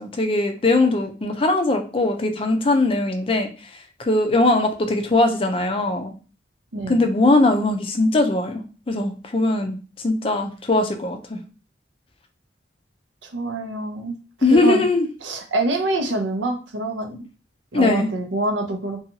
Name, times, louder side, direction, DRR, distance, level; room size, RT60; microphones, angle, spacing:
voice 1, 0.0-3.5 4.0-6.1 6.9-11.4 14.4-15.1 17.7-18.1, left 2 dB, 30° left, 5 dB, 0.4 m, -20 dB
voice 2, 6.7-7.0 13.2-14.2 14.5-14.8 15.2-17.2 17.7-19.0, right 2 dB, 85° right, 4 dB, 0.6 m, -25 dB
2.6 x 2.3 x 2.8 m, 0.37 s
head